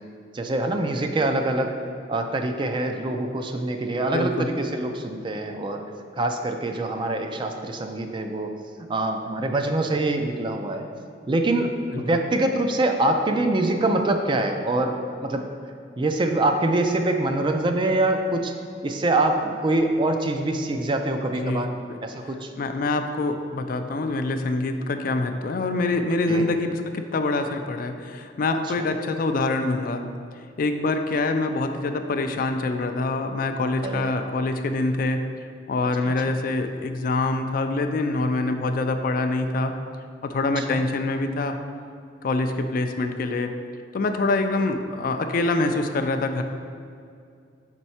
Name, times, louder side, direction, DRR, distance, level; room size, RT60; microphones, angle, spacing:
voice 1, 0.3-1.8 2.1-5.8 6.2-8.5 8.9-10.9 11.3-15.5 16.0-18.5 18.8-21.7 22.0-22.5 26.3-26.5 28.8-28.9 33.8-34.1 40.6-40.7, right 2 dB, 25° right, 5 dB, 0.4 m, -24 dB
voice 2, 4.1-4.5 11.9-12.2 21.4-21.7 22.6-30.0 30.6-35.2 35.7-39.7 40.2-41.6 42.2-43.5 43.9-46.4, left 2 dB, 50° left, 7 dB, 0.4 m, -25 dB
5.4 x 4.5 x 4.2 m, 2.4 s
head